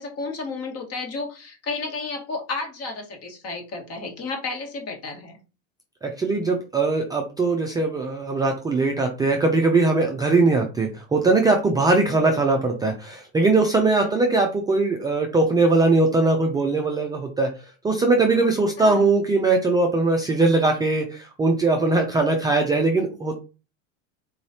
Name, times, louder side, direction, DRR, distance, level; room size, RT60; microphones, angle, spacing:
voice 1, 0.0-5.4 12.1-12.3 14.0-14.4 18.8-19.1, left 3 dB, 40° left, 2 dB, 1.5 m, -32 dB
voice 2, 6.0-17.5 17.8-23.4, right 3 dB, 10° right, 1 dB, 0.4 m, -20 dB
4.0 x 3.1 x 2.7 m, 0.32 s
hypercardioid pair, 110°, 37 cm